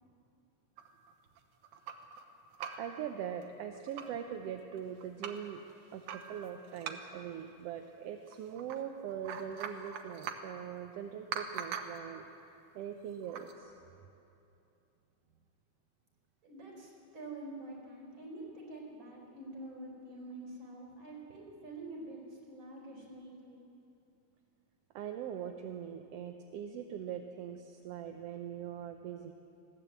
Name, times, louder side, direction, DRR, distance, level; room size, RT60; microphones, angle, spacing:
sound 1, 0.8-2.2 2.5-3.0 3.4-3.5 3.7-4.2 4.7-5.5 6.1-7.3 8.3-8.8 9.1-10.6 11.3-12.1 13.2-13.5, right 7 dB, 85° right, 2.5 m, -43 dB
voice 1, 2.7-5.6 5.9-12.3 12.7-13.7 24.9-29.3, right 8 dB, 70° right, 5 dB, 1.7 m, -42 dB
voice 2, 16.4-22.2 22.5-23.6, right 2 dB, 40° right, -1 dB, 5.1 m, -47 dB
20.0 x 16.0 x 8.1 m, 2.8 s
omnidirectional pair, 3.4 m